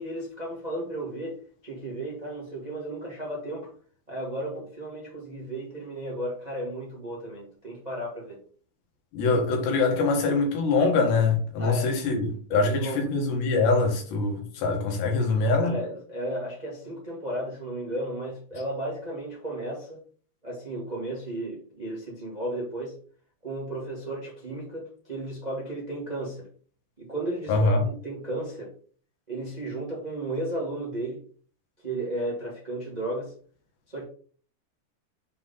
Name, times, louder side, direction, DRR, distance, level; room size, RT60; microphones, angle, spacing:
voice 1, 0.0-1.3 1.6-3.7 4.1-8.4 11.6-11.9 12.5-13.1 15.6-20.0 20.4-23.0 23.4-26.5 27.0-28.7 29.3-31.2 31.8-33.3 33.9-34.0, right 1 dB, 85° right, 0.3 m, -34 dB
voice 2, 9.1-15.8 27.5-27.8, left 3 dB, 90° left, 3.8 m, -24 dB
7.4 x 3.8 x 4.2 m
omnidirectional pair, 4.7 m